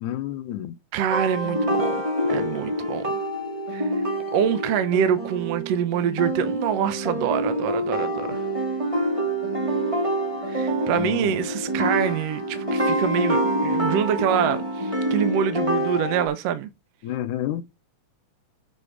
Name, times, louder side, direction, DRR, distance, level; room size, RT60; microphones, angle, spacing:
voice 1, 0.0-0.7 11.0-11.3 17.0-17.6, left 12 dB, 75° left, 2.2 m, -29 dB
voice 2, 0.9-1.9 2.3-3.1 3.7-3.9 4.3-8.4 10.5-16.7, right 9 dB, 70° right, 1.6 m, -25 dB
sound 1, 1.1-16.3, right 1 dB, 10° right, 1.9 m, -26 dB
8.3 x 5.1 x 5.0 m
omnidirectional pair, 3.7 m